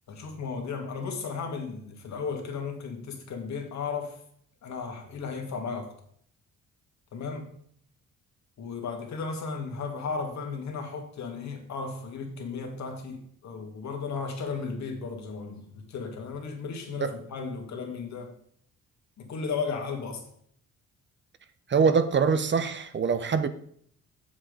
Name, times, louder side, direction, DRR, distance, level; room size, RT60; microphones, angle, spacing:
voice 1, 0.1-4.2 4.6-5.9 7.1-7.5 8.6-18.3 19.2-20.2, left 5 dB, 65° left, 2.2 m, -35 dB
voice 2, 21.7-23.5, right 5 dB, 40° right, 0.8 m, -24 dB
7.6 x 7.4 x 5.1 m
cardioid pair, 90°, 30 cm